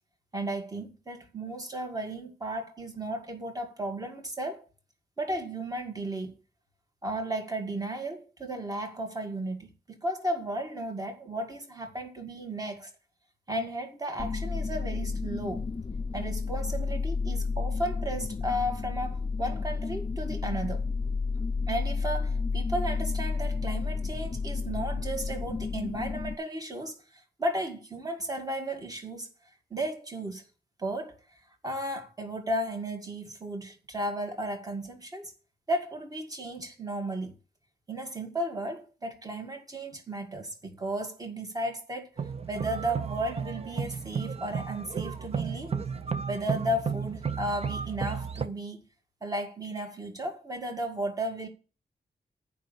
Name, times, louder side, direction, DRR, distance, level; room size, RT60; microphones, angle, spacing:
voice 1, 0.3-4.6 5.2-6.3 7.0-12.9 13.5-15.7 16.1-20.8 21.7-29.3 29.7-30.4 30.8-31.2 31.6-35.3 35.7-37.3 37.9-42.1 42.5-45.8 46.3-48.8 49.2-51.5, right 1 dB, 25° right, 2.0 m, -34 dB
sound 1, 14.2-26.3, left 4 dB, 30° left, 0.5 m, -31 dB
sound 2, 42.2-48.5, right 6 dB, 40° right, 0.6 m, -33 dB
9.2 x 5.4 x 6.9 m
wide cardioid pair, 160°, 16 cm